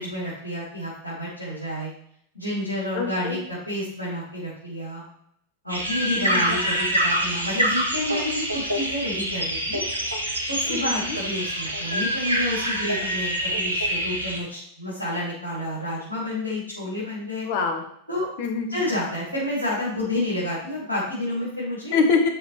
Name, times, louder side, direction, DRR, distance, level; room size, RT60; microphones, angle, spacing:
voice 1, 0.0-1.9 2.3-5.0 5.6-9.8 10.5-17.5 18.1-18.3 18.7-21.9, left 1 dB, 85° left, -8 dB, 3.4 m, -29 dB
voice 2, 2.9-3.4 6.1-6.5 10.7-11.2 17.4-17.8 18.4-19.0 21.9-22.3, left 4 dB, 50° left, 4 dB, 1.6 m, -25 dB
sound 1, 5.7-14.4, right 1 dB, 85° right, 1.4 m, -26 dB
12.0 x 5.4 x 3.4 m, 0.68 s
figure-of-eight pair, 90°, 0 cm